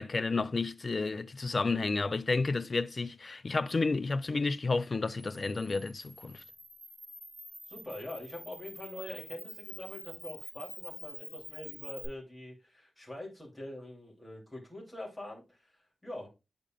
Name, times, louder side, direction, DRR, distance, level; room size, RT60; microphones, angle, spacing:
voice 1, 0.0-6.4, left 3 dB, 35° left, 0.4 m, -31 dB
Camera, 5.1-12.1, equal, 25° right, 4.3 m, -47 dB
voice 2, 7.7-16.3, left 1 dB, 10° left, 3.0 m, -44 dB
9.8 x 5.1 x 2.4 m
wide cardioid pair, 175°, 0 cm